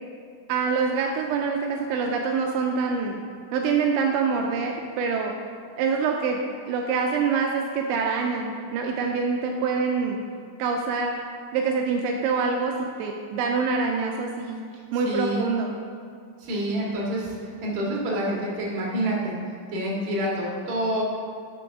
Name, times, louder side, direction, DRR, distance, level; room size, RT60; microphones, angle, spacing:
voice 1, 0.5-3.2 3.5-5.3 5.8-6.4 6.7-10.2 10.6-11.2 11.5-14.6 14.9-15.7, right 5 dB, 85° right, 1 dB, 2.9 m, -25 dB
voice 2, 15.0-15.4 16.4-19.4 19.7-21.0, right 1 dB, 50° right, -4 dB, 2.6 m, -27 dB
11.5 x 6.7 x 3.6 m, 2.3 s
omnidirectional pair, 5.4 m